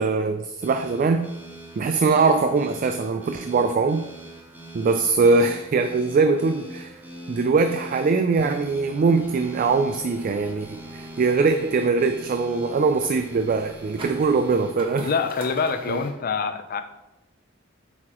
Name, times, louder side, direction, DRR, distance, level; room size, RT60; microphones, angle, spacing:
voice 1, 0.0-1.3 1.8-4.1 4.7-7.0 7.3-15.1 15.9-16.0, right 4 dB, 40° right, 8 dB, 0.3 m, -22 dB
sound 1, 0.6-14.7, right 1 dB, 10° right, 0.7 m, -42 dB
sound 2, 9.0-16.1, right 1 dB, 25° right, 1.0 m, -45 dB
voice 2, 15.0-16.8, left 5 dB, 45° left, 9 dB, 0.4 m, -25 dB
7.3 x 4.7 x 3.0 m, 0.95 s
head